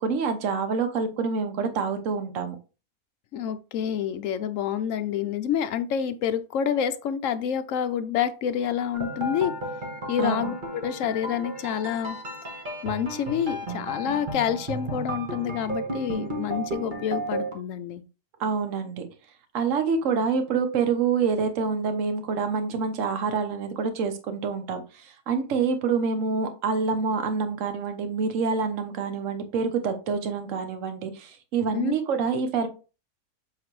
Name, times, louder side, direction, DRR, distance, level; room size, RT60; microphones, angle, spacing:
voice 1, 0.0-2.6 10.2-10.5 18.4-19.0 19.5-32.7, right 5 dB, 60° right, 1.3 m, -27 dB
voice 2, 3.3-9.5 10.1-12.2 12.8-18.0 31.7-31.9, left 8 dB, 65° left, 0.9 m, -28 dB
sound 1, 8.9-17.5, right 1 dB, 35° right, 1.5 m, -33 dB
7.7 x 4.0 x 3.2 m
omnidirectional pair, 1.6 m